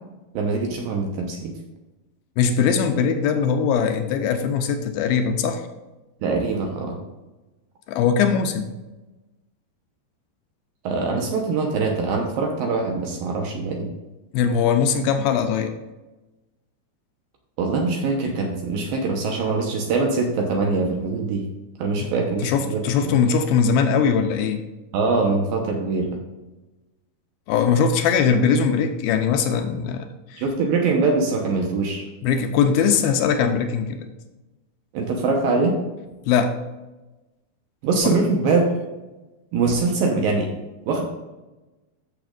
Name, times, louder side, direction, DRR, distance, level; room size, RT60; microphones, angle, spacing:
voice 1, 0.3-1.5 6.2-7.0 10.8-13.9 17.6-21.5 21.8-23.1 24.9-26.1 30.4-32.1 34.9-35.8 37.8-38.7 39.5-40.5 40.9-41.0, right 3 dB, 70° right, 1 dB, 2.5 m, -23 dB
voice 2, 2.4-5.6 7.9-8.7 14.3-15.7 22.0-22.1 22.4-24.6 27.5-30.4 32.2-34.1 36.3-36.6 38.0-38.2, left 6 dB, 80° left, 6 dB, 2.3 m, -21 dB
13.5 x 7.0 x 2.5 m, 1.1 s
omnidirectional pair, 4.7 m